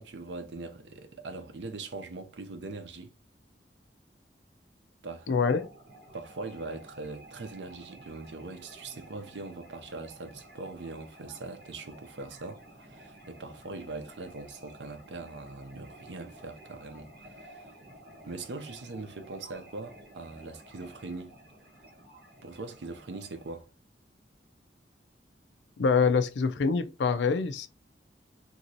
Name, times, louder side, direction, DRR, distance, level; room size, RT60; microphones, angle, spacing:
voice 1, 0.0-3.1 5.0-5.4 6.1-17.7 18.2-21.4 22.4-23.7, right 3 dB, 85° right, 0.6 m, -41 dB
voice 2, 5.3-5.6 25.8-27.7, left 5 dB, 90° left, 0.4 m, -25 dB
sound 1, 5.4-23.5, right 1 dB, 55° right, 1.1 m, -52 dB
3.0 x 2.7 x 2.7 m
head